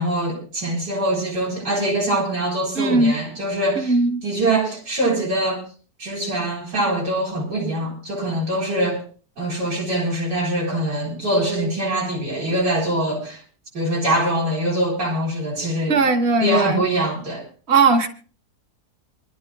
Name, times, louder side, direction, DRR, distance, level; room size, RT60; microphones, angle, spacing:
voice 1, 0.0-3.9 4.2-5.6 6.0-9.0 9.4-13.4 13.7-16.0 16.4-17.4, right 1 dB, 80° right, 4.8 m, -23 dB
voice 2, 2.7-3.1 3.8-4.2 15.9-16.8 17.7-18.1, right 3 dB, 40° right, 1.6 m, -18 dB
27.0 x 11.5 x 2.3 m
omnidirectional pair, 1.8 m